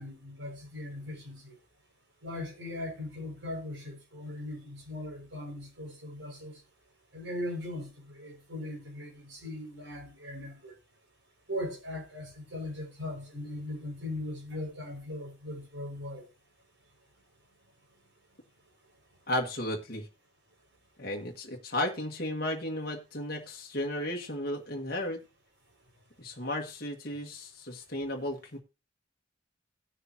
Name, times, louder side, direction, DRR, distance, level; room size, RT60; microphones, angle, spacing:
voice 1, 0.0-1.5 2.2-6.6 7.1-10.7 11.5-16.2, left 1 dB, 80° right, 5.7 m, -39 dB
voice 2, 19.3-20.1 21.0-25.2 26.2-28.6, left 1 dB, 50° left, 1.7 m, -34 dB
18.5 x 6.6 x 2.9 m
head